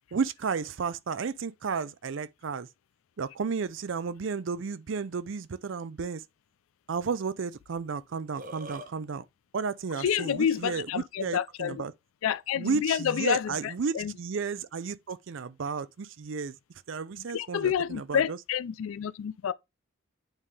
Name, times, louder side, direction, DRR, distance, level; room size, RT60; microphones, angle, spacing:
voice 1, 0.1-2.7 3.2-6.2 6.9-9.2 9.5-11.9 12.6-16.6 16.9-18.4, right 5 dB, 65° right, 0.5 m, -33 dB
Burping eructation, 8.1-8.9, right 1 dB, 40° right, 0.9 m, -42 dB
voice 2, 9.9-11.8 12.2-14.1 17.2-19.5, left 8 dB, 80° left, 0.3 m, -29 dB
8.9 x 3.6 x 3.3 m
head